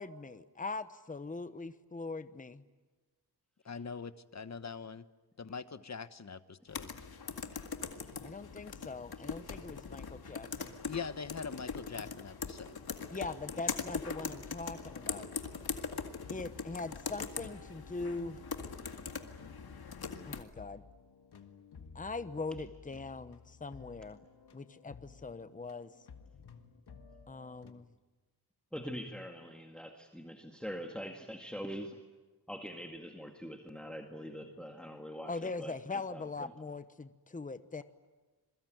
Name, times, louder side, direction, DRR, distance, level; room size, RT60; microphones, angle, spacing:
voice 1, 0.0-2.6 8.2-10.8 13.1-15.3 16.3-18.4 20.3-20.8 21.9-24.2 24.5-25.9 27.3-27.9 35.2-37.8, left 3 dB, 20° left, 12 dB, 1.0 m, -41 dB
voice 2, 3.6-5.0 5.4-6.9 10.8-12.8, left 5 dB, 45° left, 13 dB, 1.1 m, -42 dB
sound 1, 6.7-20.4, left 5 dB, 70° left, 2.1 m, -41 dB
sound 2, 14.6-27.7, left 5 dB, 90° left, 1.9 m, -55 dB
voice 3, 28.7-32.0 32.5-36.5, equal, ahead, 3 dB, 2.0 m, -44 dB
27.0 x 22.5 x 9.3 m, 1.2 s
wide cardioid pair, 105°, 38 cm